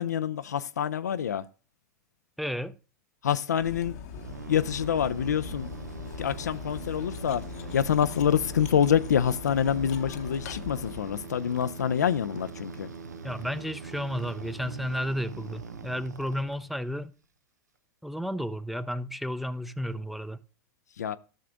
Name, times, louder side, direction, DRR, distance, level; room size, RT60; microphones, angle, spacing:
voice 1, 0.0-1.4 3.2-4.0 4.5-5.7 6.2-7.4 7.7-12.9 21.0-21.2, left 8 dB, 80° left, 0.4 m, -26 dB
voice 2, 2.4-2.7 13.2-17.1 18.0-20.4, equal, ahead, 0.5 m, -32 dB
Cutlery silverware, 3.5-11.3, left 6 dB, 65° left, 0.9 m, -41 dB
sound 1, 4.1-17.0, right 4 dB, 85° right, 0.6 m, -42 dB
12.5 x 6.6 x 2.5 m
hypercardioid pair, 90°, 9 cm